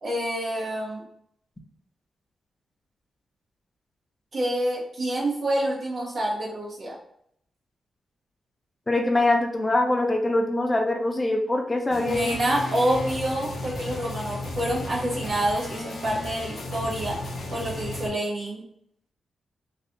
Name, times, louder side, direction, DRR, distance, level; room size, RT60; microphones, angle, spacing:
voice 1, 0.0-1.0 4.3-6.9 12.0-17.2 17.5-18.6, right 1 dB, 60° right, -5 dB, 1.1 m, -27 dB
voice 2, 8.9-12.4, left 2 dB, 25° left, 3 dB, 0.8 m, -23 dB
sound 1, 11.9-18.1, left 2 dB, 70° left, 0.8 m, -34 dB
3.2 x 2.5 x 3.8 m, 0.70 s
cardioid pair, 60°, 0 cm